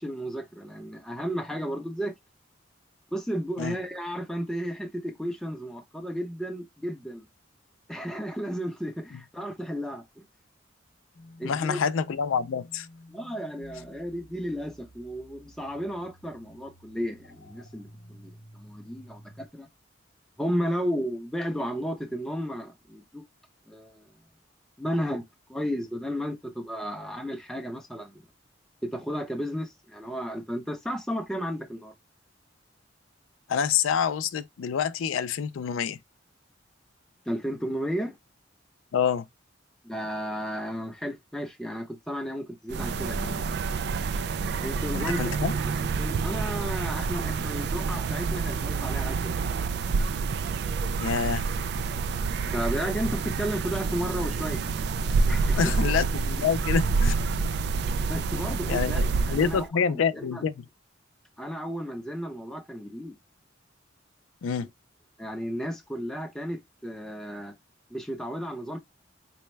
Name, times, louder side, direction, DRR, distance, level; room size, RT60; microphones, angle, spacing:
voice 1, 0.0-2.1 3.1-7.3 7.9-10.2 11.4-11.8 13.1-19.7 20.4-23.2 23.7-24.1 24.8-25.2 25.5-28.2 28.8-31.9 37.3-38.1 39.8-43.4 44.6-45.7 46.0-49.8 52.4-54.7 55.3-55.9 58.1-60.4 61.4-63.1 65.2-67.5 67.9-68.8, equal, 5° left, 0.6 m, -33 dB
sound 1, 11.1-19.5, left 1 dB, 65° left, 0.8 m, -51 dB
voice 2, 11.4-12.9 33.5-36.0 38.9-39.3 44.9-45.5 51.0-51.4 55.6-57.4 58.7-60.7 64.4-64.7, left 6 dB, 85° left, 0.4 m, -27 dB
sound 2, 42.7-59.7, right 4 dB, 55° right, 0.3 m, -28 dB
4.2 x 2.2 x 3.2 m
head